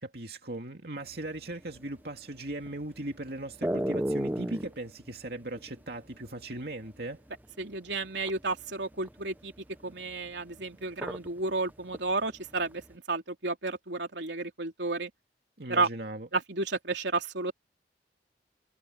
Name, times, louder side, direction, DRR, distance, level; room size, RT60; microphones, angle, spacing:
voice 1, 0.0-7.2 15.6-16.3, right 1 dB, 60° right, 2.7 m, -38 dB
sound 1, 1.1-7.6 7.9-11.4 11.7-12.9, right 1 dB, 10° right, 0.8 m, -34 dB
voice 2, 7.6-15.1 15.7-15.9 16.3-17.5, right 3 dB, 75° right, 3.2 m, -32 dB
head